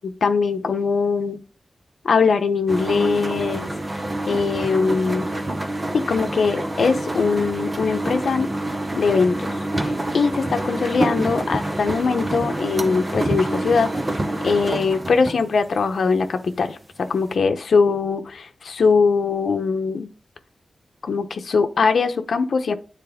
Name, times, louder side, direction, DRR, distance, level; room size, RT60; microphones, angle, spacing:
voice 1, 0.2-1.4 2.0-3.7 4.3-5.3 5.9-8.5 9.0-9.5 9.8-13.9 14.4-20.1 21.0-22.7, left 4 dB, 65° left, 0.8 m, -21 dB
sound 1, 2.7-16.8, right 1 dB, 20° right, 0.8 m, -27 dB
9.4 x 4.2 x 3.6 m
wide cardioid pair, 160°, 0 cm